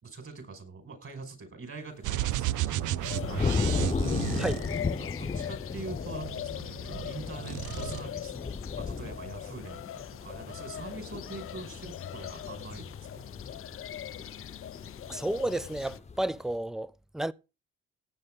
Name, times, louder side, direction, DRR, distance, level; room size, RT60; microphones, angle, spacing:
voice 1, 0.0-3.5 4.9-8.5 8.8-13.3, right 4 dB, 45° right, 5.4 m, -44 dB
sound 1, 2.0-5.3 6.1-7.1 7.4-8.0, right 15 dB, 80° right, 0.6 m, -33 dB
sound 2, 2.3-16.5, left 4 dB, 20° left, 0.9 m, -36 dB
sound 3, 3.0-16.0, left 11 dB, 45° left, 0.5 m, -41 dB
voice 2, 15.1-17.3, right 1 dB, ahead, 0.5 m, -32 dB
17.5 x 7.6 x 3.8 m
cardioid pair, 90°, 30 cm